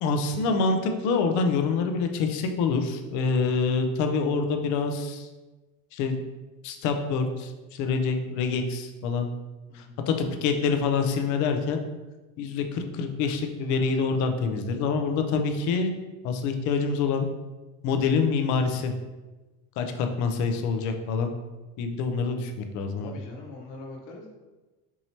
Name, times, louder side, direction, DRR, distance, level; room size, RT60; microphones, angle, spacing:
voice 1, 0.0-5.3 5.9-6.2 6.6-9.3 9.7-11.8 12.4-16.0 16.2-17.3 17.8-18.9 19.8-21.3 21.8-23.1, left 4 dB, 55° left, 6 dB, 0.5 m, -26 dB
voice 2, 9.7-10.1 23.0-24.3, left 2 dB, 80° left, -1 dB, 1.1 m, -42 dB
4.7 x 2.9 x 2.8 m, 1.2 s
cardioid pair, 140°, 36 cm